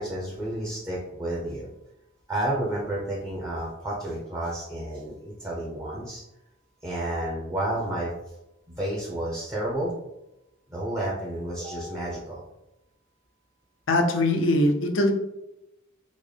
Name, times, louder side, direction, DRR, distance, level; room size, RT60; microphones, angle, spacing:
voice 1, 0.0-1.7 2.3-6.2 6.8-8.1 8.7-9.9 10.7-12.4, right 1 dB, 15° right, -5 dB, 0.7 m, -31 dB
voice 2, 13.9-15.1, left 1 dB, 70° left, 5 dB, 0.5 m, -21 dB
3.9 x 2.1 x 3.3 m, 0.89 s
head